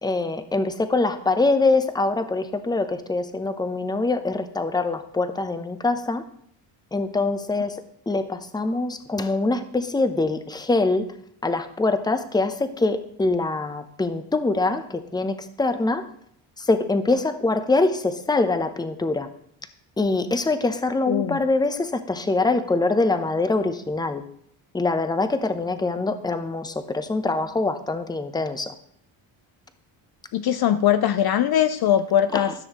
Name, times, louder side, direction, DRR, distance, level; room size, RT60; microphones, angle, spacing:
voice 1, 0.0-6.2 6.9-11.1 11.4-16.1 16.6-19.3 20.0-24.2 24.7-28.7 32.3-32.5, left 3 dB, 10° left, 0.7 m, -24 dB
voice 2, 21.1-21.4 30.3-32.5, left 10 dB, 50° left, 0.5 m, -21 dB
14.0 x 6.2 x 3.0 m
cardioid pair, 80°, 50 cm